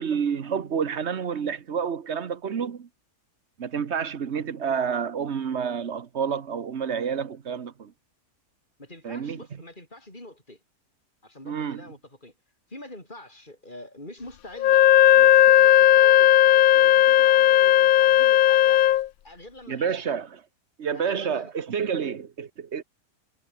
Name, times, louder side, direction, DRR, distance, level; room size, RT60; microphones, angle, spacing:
voice 1, 0.0-2.9 3.6-7.9 9.0-9.4 11.4-11.8 19.7-20.4 20.8-22.8, right 7 dB, 50° right, 1.3 m, -29 dB
voice 2, 8.8-10.6 11.2-12.3 12.7-18.8 19.2-20.1 20.9-21.5, left 1 dB, 30° left, 8.0 m, -45 dB
Wind instrument woodwind instrument, 14.6-19.1, left 13 dB, 75° left, 1.1 m, -16 dB
omnidirectional pair, 1.6 m